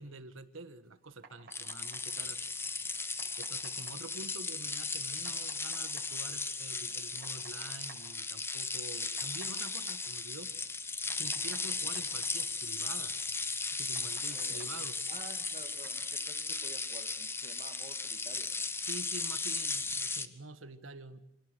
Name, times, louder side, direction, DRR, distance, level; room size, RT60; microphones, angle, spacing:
voice 1, 0.0-2.4 2.8-3.0 3.4-10.5 11.1-13.2 13.7-15.0 18.9-21.2, right 2 dB, 90° right, 11 dB, 1.6 m, -47 dB
sound 1, 0.8-19.9, right 4 dB, 50° right, 5.9 m, -59 dB
sound 2, 1.5-20.3, left 4 dB, 10° left, 0.9 m, -36 dB
voice 2, 14.0-14.7 15.1-18.7, right 3 dB, 35° right, 6 dB, 2.3 m, -51 dB
26.5 x 18.0 x 8.1 m, 0.81 s
head